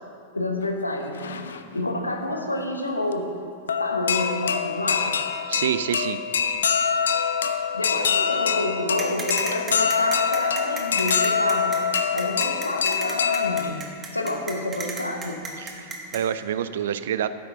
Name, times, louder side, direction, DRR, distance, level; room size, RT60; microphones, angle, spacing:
voice 1, 0.3-1.4 1.7-3.3 3.8-5.2 7.7-11.8 12.1-13.8 14.1-15.4, left 1 dB, 85° left, 3 dB, 1.1 m, -28 dB
sound 1, 0.6-0.7 1.0-1.8 3.1-3.2 3.7-13.7, left 6 dB, 65° left, 0.5 m, -25 dB
voice 2, 5.5-6.2 15.6-17.3, right 9 dB, 60° right, 13 dB, 0.4 m, -27 dB
sound 2, 9.0-16.2, right 4 dB, 20° right, 1.5 m, -34 dB
12.5 x 9.8 x 3.9 m, 2.4 s
figure-of-eight pair, 90°, 0 cm